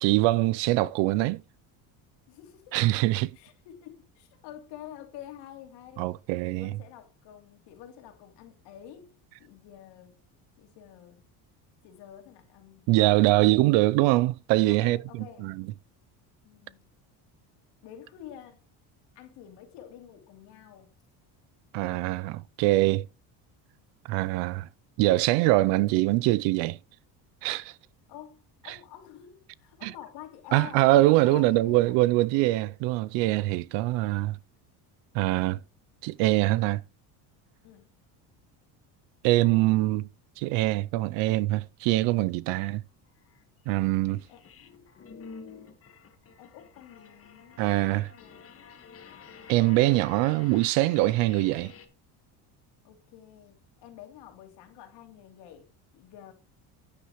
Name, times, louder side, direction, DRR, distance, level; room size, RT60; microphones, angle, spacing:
voice 1, 0.0-1.4 2.7-3.3 6.0-6.7 12.9-15.0 15.4-15.7 21.7-23.1 24.1-24.7 25.0-26.8 27.4-27.7 29.8-29.9 30.5-34.4 35.1-35.6 36.0-36.8 39.2-40.1 40.4-42.8 43.7-44.2 47.6-48.1 49.5-51.7, right 18 dB, 80° right, 0.6 m, -23 dB
voice 2, 2.3-2.8 3.3-6.1 6.5-9.1 9.4-10.2 10.6-11.2 11.8-14.0 14.7-15.5 16.4-16.9 17.8-18.6 19.1-20.9 28.1-30.9 31.2-31.9 37.6-38.0 39.5-39.8 42.5-42.6 44.3-44.4 46.4-47.7 48.1-48.7 52.8-56.3, left 11 dB, 70° left, 2.8 m, -48 dB
sound 1, 42.6-42.7 43.2-51.9, left 5 dB, 30° left, 1.7 m, -49 dB
9.9 x 9.6 x 3.1 m
cardioid pair, 145°, 43 cm